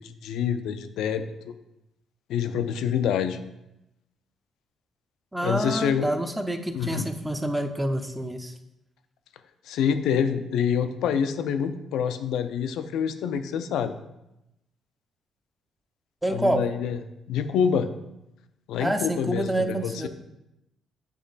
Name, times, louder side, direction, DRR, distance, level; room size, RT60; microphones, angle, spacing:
voice 1, 0.0-1.5 2.3-3.4 5.4-6.1 6.7-7.1 9.7-13.9 16.3-17.0 17.3-17.9 18.7-20.1, left 7 dB, 85° left, 10 dB, 0.4 m, -26 dB
voice 2, 5.3-8.5 16.2-16.6 18.8-20.1, right 1 dB, 10° right, 6 dB, 0.6 m, -27 dB
8.1 x 3.1 x 4.0 m, 0.90 s
cardioid pair, 90°, 0 cm